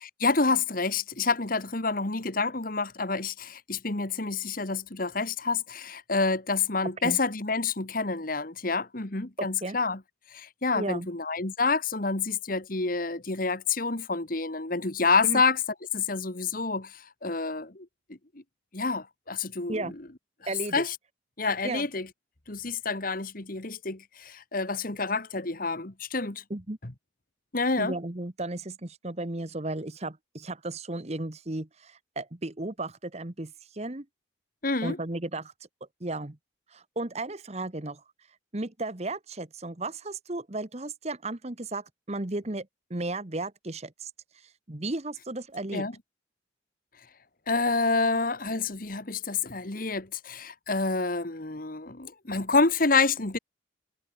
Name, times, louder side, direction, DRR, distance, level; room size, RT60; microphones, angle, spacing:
voice 1, 0.0-10.0 10.3-15.6 15.9-18.2 18.7-19.9 20.4-21.0 21.4-22.1 22.5-26.4 27.5-28.0 34.6-35.0 45.7-45.9 47.5-53.4, left 4 dB, 45° left, 1.7 m, -28 dB
voice 2, 9.4-9.8 10.7-11.1 15.2-15.4 19.7-19.9 20.5-20.8 21.6-21.9 26.5-26.8 27.8-34.1 34.8-35.5 36.0-36.4 36.7-38.0 38.5-44.1 44.7-45.9, right 2 dB, 35° right, 1.2 m, -34 dB
head